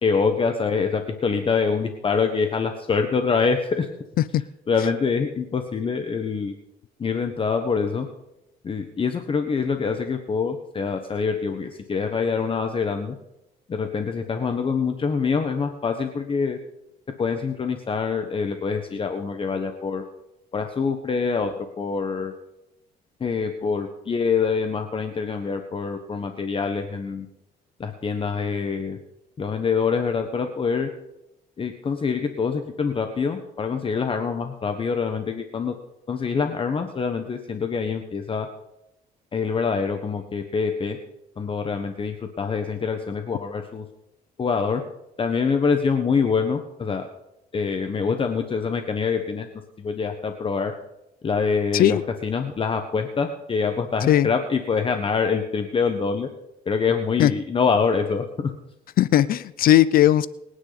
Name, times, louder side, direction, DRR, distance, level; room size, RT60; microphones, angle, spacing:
voice 1, 0.0-3.9 4.7-6.5 7.0-8.1 8.6-13.2 13.7-16.6 17.2-20.0 20.5-22.3 23.2-27.3 27.8-29.0 29.4-30.9 31.6-35.7 36.1-38.5 39.3-41.0 41.4-43.8 44.4-44.8 45.2-47.1 47.5-49.5 49.8-50.7 51.2-56.3 56.7-58.5, left 5 dB, 30° left, 6 dB, 1.3 m, -25 dB
voice 2, 59.0-60.3, left 12 dB, 60° left, 18 dB, 0.6 m, -17 dB
24.0 x 9.9 x 4.1 m, 0.89 s
cardioid pair, 110°, 17 cm